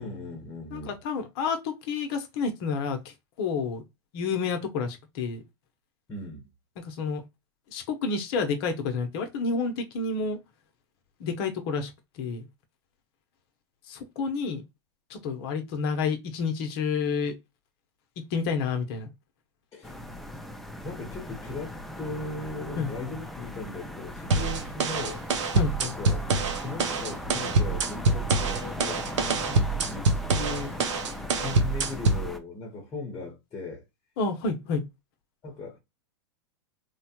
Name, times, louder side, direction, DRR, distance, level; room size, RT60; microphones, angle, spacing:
voice 1, 0.0-1.0 6.1-6.5 19.7-20.0 20.8-25.2 25.8-26.3 26.5-31.1 31.4-33.8 35.4-35.8, left 3 dB, 20° left, 0.9 m, -38 dB
voice 2, 0.7-3.8 4.1-5.4 6.8-7.2 7.7-10.4 11.2-12.4 13.9-14.6 15.1-17.3 18.3-19.1 22.8-22.9 25.5-25.7 34.2-34.8, left 5 dB, 55° left, 0.7 m, -29 dB
sound 1, 19.8-32.4, left 1 dB, ahead, 0.4 m, -39 dB
sound 2, 24.3-32.3, right 3 dB, 80° right, 0.7 m, -25 dB
3.2 x 2.2 x 2.8 m
hypercardioid pair, 115°, 15 cm